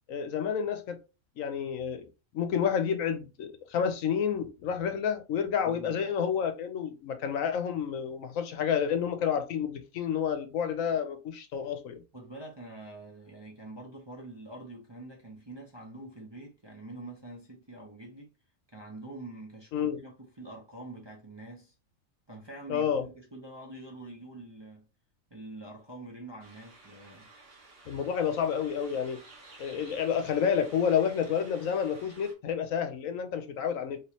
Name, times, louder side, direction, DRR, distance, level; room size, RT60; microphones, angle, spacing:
voice 1, 0.1-1.0 1.4-2.1 2.3-12.0 19.7-20.0 22.7-23.1 27.9-29.2 29.6-34.0, left 7 dB, 75° left, 1.1 m, -29 dB
voice 2, 5.6-6.0 12.1-18.3 18.7-21.7 22.3-24.9 25.3-27.3, right 2 dB, 25° right, 0.6 m, -45 dB
sound 1, 26.4-32.3, right 3 dB, 50° right, 1.2 m, -53 dB
3.4 x 3.0 x 2.8 m
omnidirectional pair, 1.4 m